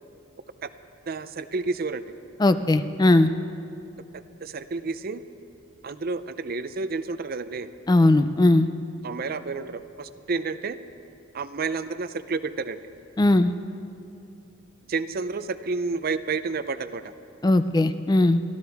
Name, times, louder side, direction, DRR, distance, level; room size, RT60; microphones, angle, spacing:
voice 1, 1.1-2.1 4.1-5.2 5.8-7.7 9.0-10.8 11.3-12.8 14.9-17.1, right 4 dB, 45° right, 12 dB, 0.5 m, -30 dB
voice 2, 2.4-3.3 7.9-8.7 13.2-13.5 17.4-18.4, left 2 dB, 20° left, 11 dB, 0.4 m, -19 dB
30.0 x 12.5 x 3.5 m, 2.7 s
head